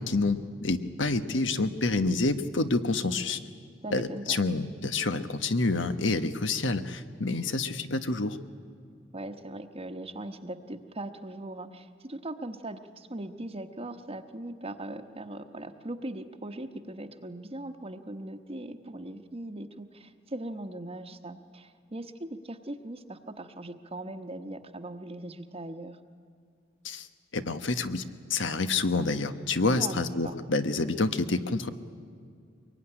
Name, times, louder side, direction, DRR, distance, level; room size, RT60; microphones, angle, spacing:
voice 1, 0.0-3.4 3.9-8.4 26.8-27.1 27.3-28.0 28.3-31.7, left 3 dB, 85° left, 10 dB, 1.3 m, -28 dB
voice 2, 3.8-4.4 9.1-26.0 29.8-30.3, right 1 dB, 30° right, 7 dB, 1.1 m, -40 dB
23.5 x 22.0 x 10.0 m, 2.2 s
head